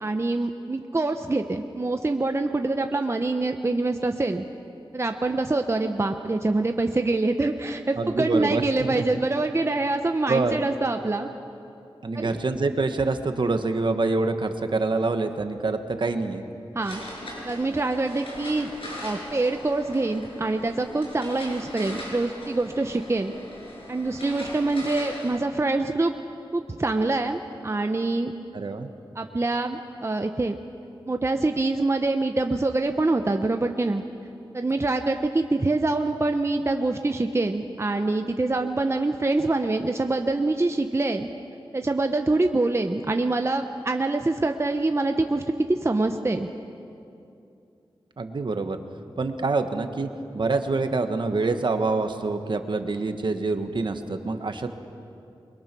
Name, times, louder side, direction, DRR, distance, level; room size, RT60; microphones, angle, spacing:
voice 1, 0.0-4.4 4.9-11.3 12.1-12.4 16.7-17.0 17.4-18.7 19.0-23.3 23.9-26.1 26.5-28.3 29.1-30.6 31.1-34.0 34.5-41.3 41.7-46.5, right 2 dB, 30° right, 5 dB, 0.9 m, -25 dB
voice 2, 8.0-8.6 8.9-9.0 10.3-10.6 12.0-16.4 28.5-28.9 48.2-48.8 49.2-50.1 50.3-54.7, right 3 dB, 55° right, 7 dB, 1.5 m, -26 dB
sound 1, 16.8-25.4, left 1 dB, 80° left, 7.4 m, -39 dB
28.5 x 22.5 x 6.2 m, 2.6 s
wide cardioid pair, 85°, 9 cm